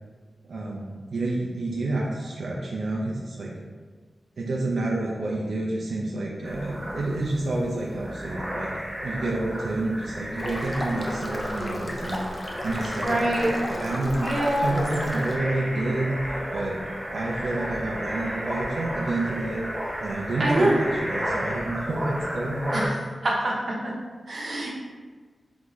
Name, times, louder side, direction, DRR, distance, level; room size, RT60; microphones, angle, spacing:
voice 1, 0.5-3.6 4.4-8.7 9.0-12.2 12.6-14.3 14.6-16.8 17.1-19.6 20.0-22.9, right 2 dB, 85° right, -3 dB, 0.5 m, -29 dB
sound 1, 6.4-22.9, equal, 25° right, 1.0 m, -33 dB
sound 2, 10.4-15.4, left 1 dB, 20° left, 0.5 m, -34 dB
voice 2, 13.0-13.5 14.2-14.7 20.4-20.8 22.7-22.9 23.2-23.6 24.3-24.7, right 1 dB, 55° right, -3 dB, 0.8 m, -24 dB
3.9 x 3.5 x 3.1 m, 1.4 s
wide cardioid pair, 140°, 0 cm